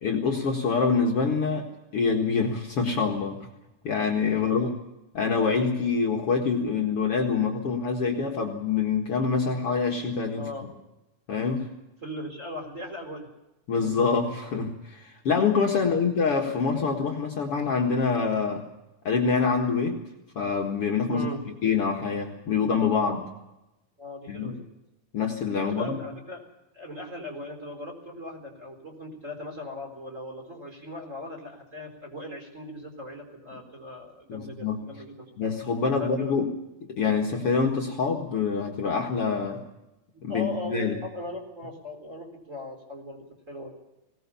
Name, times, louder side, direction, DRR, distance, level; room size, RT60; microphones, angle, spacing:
voice 1, 0.0-1.7 1.9-3.4 3.8-4.7 5.1-10.5 11.3-11.7 13.7-18.7 19.1-20.0 20.4-21.3 21.6-23.3 24.3-24.5 25.1-26.0 34.3-34.8 35.4-36.4 36.9-39.6 40.2-41.0, left 5 dB, 50° left, 0 dB, 2.3 m, -25 dB
voice 2, 4.4-4.7 10.3-10.7 12.0-13.3 15.8-16.0 21.1-21.4 24.0-24.6 25.6-26.4 26.7-35.3 35.8-36.4 40.3-43.7, left 1 dB, 20° right, 2 dB, 4.3 m, -39 dB
21.0 x 18.5 x 7.0 m, 0.96 s
omnidirectional pair, 3.7 m